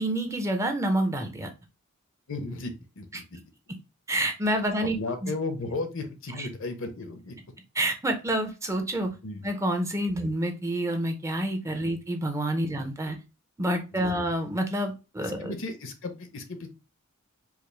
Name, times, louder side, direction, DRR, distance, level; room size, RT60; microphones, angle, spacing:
voice 1, 0.0-1.5 4.1-5.0 7.8-9.1 9.4-13.2 13.6-15.5, right 1 dB, 15° right, 5 dB, 0.5 m, -28 dB
voice 2, 2.3-3.2 3.7-3.8 4.6-4.7 4.9-7.4 9.2-9.5 10.2-10.3 11.6-11.9 12.6-12.8 13.9-14.2 15.2-16.7, left 3 dB, 65° left, 8 dB, 0.7 m, -35 dB
4.8 x 2.0 x 3.1 m, 0.28 s
head